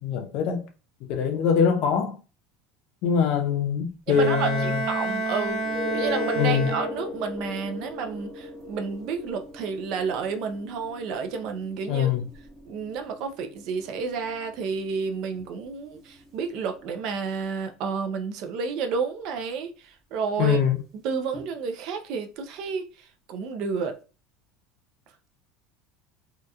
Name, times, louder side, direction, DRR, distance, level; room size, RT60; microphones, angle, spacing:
voice 1, 0.0-0.6 1.1-2.2 3.0-4.8 6.4-6.7 11.9-12.2 20.4-20.8, left 7 dB, 55° left, 0.5 m, -23 dB
voice 2, 4.1-5.6 5.9-12.1 12.7-20.6 20.9-24.0, right 5 dB, 55° right, 0.3 m, -31 dB
Bowed string instrument, 4.1-7.3, right 2 dB, 90° right, 0.9 m, -30 dB
sound 1, 5.5-17.1 21.3-21.4, left 1 dB, 35° right, 0.9 m, -38 dB
2.7 x 2.2 x 2.3 m
cardioid pair, 150°, 0 cm